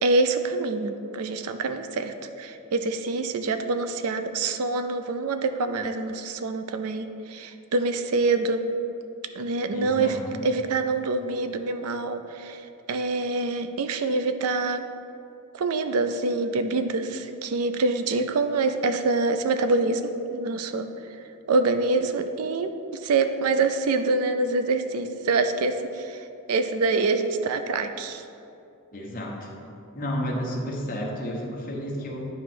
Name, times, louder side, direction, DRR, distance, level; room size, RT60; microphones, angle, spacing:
voice 1, 0.0-8.6 9.3-10.2 10.4-12.6 12.9-14.8 15.5-20.9 21.5-22.7 23.0-26.2 26.5-28.2, right 3 dB, 75° right, 8 dB, 0.4 m, -25 dB
voice 2, 9.7-10.4 28.9-29.6 29.9-32.3, equal, 40° left, -2 dB, 1.1 m, -31 dB
9.1 x 3.1 x 6.1 m, 2.7 s
head